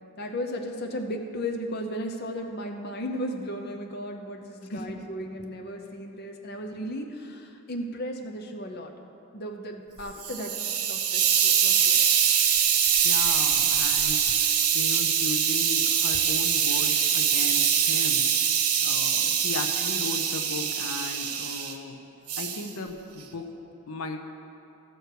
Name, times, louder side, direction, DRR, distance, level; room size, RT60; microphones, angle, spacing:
voice 1, 0.2-8.9 9.3-12.0, equal, 45° left, 3 dB, 0.7 m, -35 dB
voice 2, 4.7-5.1 12.8-18.3 18.8-22.0 22.4-23.5 23.9-24.2, left 3 dB, 80° left, 5 dB, 0.7 m, -36 dB
Hiss, 10.0-21.7 22.3-22.7, right 8 dB, 85° right, 0.9 m, -24 dB
14.5 x 6.7 x 4.6 m, 2.8 s
head